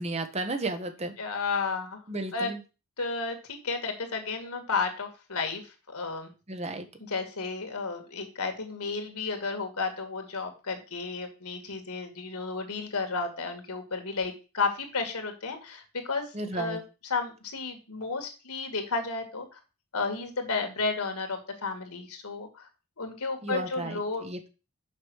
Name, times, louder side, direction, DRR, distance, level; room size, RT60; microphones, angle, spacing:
voice 1, 0.0-1.1 2.1-2.6 6.5-6.9 16.3-16.8 23.4-24.5, right 2 dB, 30° right, 7 dB, 1.2 m, -33 dB
voice 2, 1.2-2.0 2.3-2.5 3.0-6.3 7.1-16.8 17.1-19.6 19.9-22.7 23.0-24.2, left 4 dB, 90° left, 6 dB, 2.2 m, -32 dB
6.6 x 5.2 x 6.4 m, 0.31 s
head